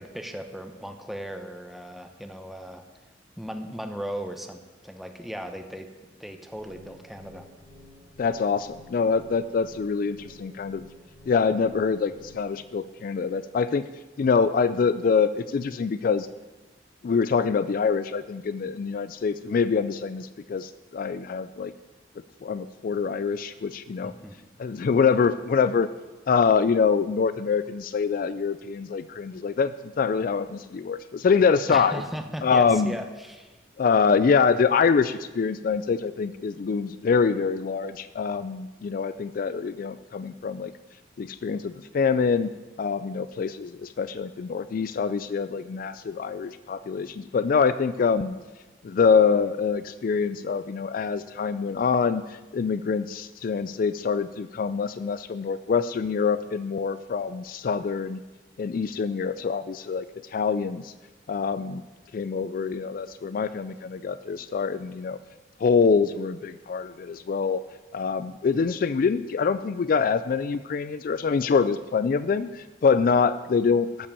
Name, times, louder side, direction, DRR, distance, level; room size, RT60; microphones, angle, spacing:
voice 1, 0.0-2.8 3.4-5.9 6.2-7.4 24.0-24.4 31.7-33.5, equal, ahead, 5 dB, 0.8 m, -37 dB
sound 1, 6.5-12.5, left 1 dB, 45° right, 3.9 m, -51 dB
voice 2, 8.2-10.8 11.3-13.9 14.2-16.3 17.0-21.7 22.4-24.1 24.6-25.9 26.3-32.0 32.4-32.9 33.8-40.7 41.2-42.5 42.8-48.4 48.8-58.2 58.6-60.1 60.3-60.9 61.3-61.8 62.1-65.2 65.6-67.6 67.9-74.1, left 5 dB, 50° left, 13 dB, 0.3 m, -25 dB
12.0 x 5.7 x 6.9 m, 1.2 s
head